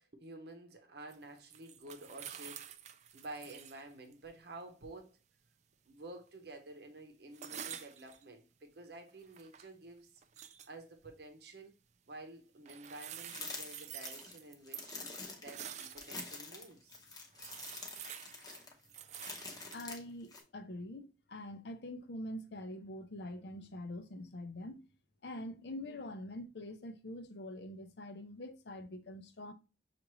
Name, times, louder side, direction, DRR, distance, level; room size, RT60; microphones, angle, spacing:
voice 1, 0.0-5.2 5.9-11.7 12.1-15.0 15.4-17.0, right 2 dB, 60° right, 0.8 m, -51 dB
sound 1, 1.1-3.8 4.1-4.2 7.3-8.2 9.1-9.7 10.2-10.7 12.7-16.4 16.9-17.0 17.3-19.9, right 9 dB, 40° right, 0.3 m, -49 dB
sound 2, 13.3-20.4, left 3 dB, 20° left, 0.8 m, -46 dB
voice 2, 19.7-24.9 25.2-29.5, left 1 dB, 65° left, 0.6 m, -45 dB
5.9 x 2.5 x 3.0 m
head